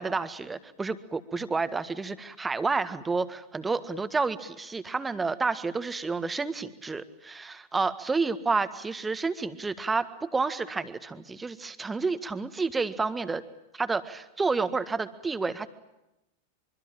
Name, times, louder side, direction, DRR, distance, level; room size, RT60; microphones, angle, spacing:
voice 1, 0.0-13.4 13.7-15.7, right 4 dB, 10° right, 12 dB, 1.7 m, -30 dB
25.0 x 24.5 x 9.0 m, 0.90 s
figure-of-eight pair, 90°, 0 cm